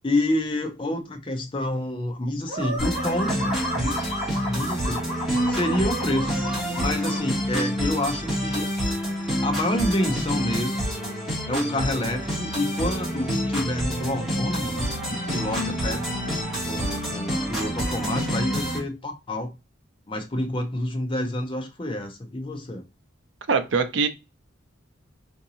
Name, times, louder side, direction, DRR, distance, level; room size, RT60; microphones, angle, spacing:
voice 1, 0.0-4.1 4.4-5.0 5.4-6.4 6.8-8.7 9.4-10.8 11.5-16.0 16.6-19.5 20.1-22.8, left 1 dB, 25° left, 0.6 m, -28 dB
sound 1, 2.5-7.2, equal, 30° right, 1.7 m, -32 dB
sound 2, 2.8-18.8, equal, ahead, 1.9 m, -28 dB
voice 2, 23.5-24.1, right 5 dB, 65° right, 0.5 m, -22 dB
3.8 x 2.6 x 2.7 m
head